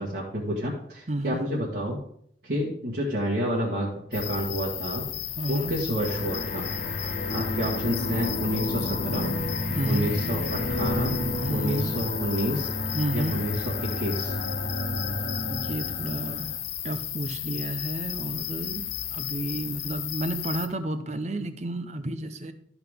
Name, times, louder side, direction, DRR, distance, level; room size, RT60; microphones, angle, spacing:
voice 1, 0.0-2.0 2.4-5.1 5.5-6.7 7.3-9.3 9.8-11.2 11.5-12.7 13.1-13.5 13.8-14.4, equal, 65° right, -6 dB, 1.8 m, -29 dB
voice 2, 1.1-1.4 5.4-5.7 9.7-10.1 11.4-12.0 12.9-13.4 15.5-16.6 16.8-22.5, right 1 dB, 40° right, 10 dB, 0.8 m, -31 dB
sound 1, 4.1-20.7, left 11 dB, 80° left, 0.8 m, -34 dB
sound 2, 6.0-16.6, left 1 dB, 45° left, 1.2 m, -31 dB
13.0 x 5.9 x 3.6 m, 0.66 s
head